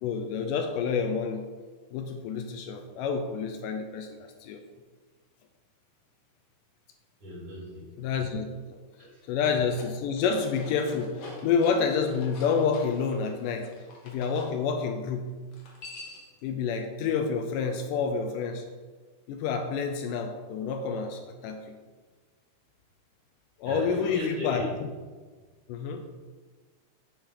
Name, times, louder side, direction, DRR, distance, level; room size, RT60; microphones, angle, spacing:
voice 1, 0.0-1.4 1.9-4.6 8.0-8.5 8.7-8.8 9.3-13.7 14.0-15.3 16.4-18.6 19.3-21.8 23.6-24.9 25.7-26.1, left 5 dB, 80° left, 5 dB, 2.1 m, -29 dB
voice 2, 7.2-7.9 9.0-9.1 23.6-24.7, left 2 dB, 45° right, -6 dB, 3.0 m, -35 dB
sound 1, 9.7-14.5 15.5-16.4, left 3 dB, 55° left, 1.5 m, -46 dB
8.2 x 7.2 x 3.8 m, 1.4 s
omnidirectional pair, 4.0 m